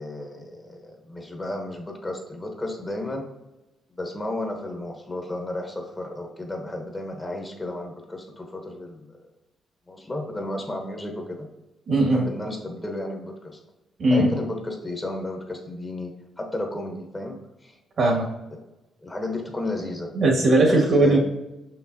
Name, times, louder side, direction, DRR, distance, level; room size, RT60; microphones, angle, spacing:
voice 1, 0.0-3.3 4.0-9.2 9.9-11.5 12.1-13.6 14.1-17.8 18.5-18.6 19.0-20.1 20.7-21.2, left 1 dB, 20° left, 3 dB, 1.1 m, -33 dB
voice 2, 11.9-12.2 14.0-14.4 18.0-18.3 20.1-21.2, right 2 dB, 55° right, -1 dB, 2.0 m, -19 dB
5.9 x 5.8 x 2.8 m, 0.98 s
cardioid pair, 90°, 0 cm